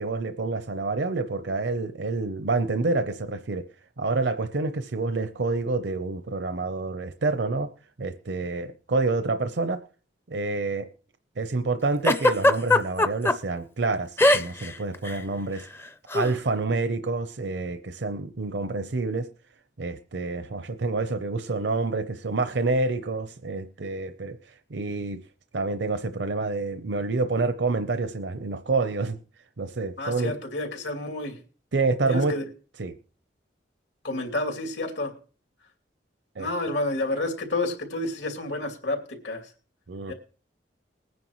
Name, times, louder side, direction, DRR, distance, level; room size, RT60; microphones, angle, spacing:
voice 1, 0.0-3.7 4.0-7.7 8.0-9.8 10.3-10.9 11.4-15.7 16.1-19.3 19.8-25.2 25.5-29.2 29.6-30.3 31.7-32.4 32.8-32.9 36.4-36.5 39.9-40.1, right 3 dB, 75° right, 0.7 m, -28 dB
Giggle, 12.0-13.3 14.2-14.7 14.9-15.2 16.1-16.3, left 2 dB, 15° left, 0.5 m, -19 dB
voice 2, 30.0-31.4 32.1-32.4 34.0-35.1 36.4-39.5 40.1-40.2, left 2 dB, 80° left, 2.8 m, -30 dB
20.5 x 9.5 x 3.1 m
head